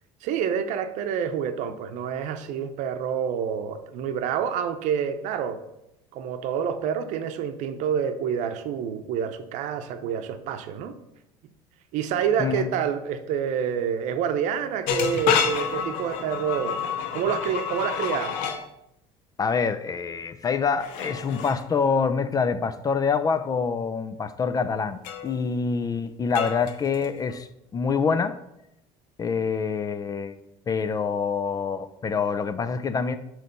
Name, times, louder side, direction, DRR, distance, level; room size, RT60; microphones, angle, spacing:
voice 1, 0.2-5.6 6.1-10.9 11.9-16.8 17.1-18.4, right 8 dB, 65° right, 0.7 m, -28 dB
sound 1, 14.9-18.6 20.8-21.6 25.0-25.4 26.3-27.4, left 7 dB, 75° left, 0.8 m, -28 dB
voice 2, 19.4-28.4 29.2-30.4 30.7-33.2, left 5 dB, 30° left, 0.5 m, -26 dB
7.6 x 3.2 x 5.3 m
supercardioid pair, 95°, 13 cm